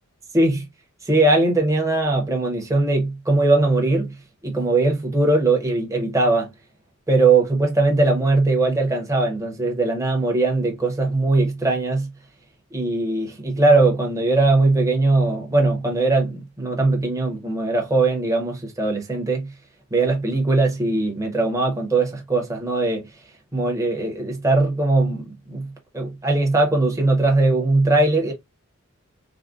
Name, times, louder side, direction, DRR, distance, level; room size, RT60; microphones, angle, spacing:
voice 1, 0.3-0.7 1.0-4.1 4.4-6.5 7.1-12.1 12.7-19.5 19.9-23.1 23.5-28.3, right 2 dB, 15° right, 0.8 m, -20 dB
3.5 x 2.1 x 2.4 m
head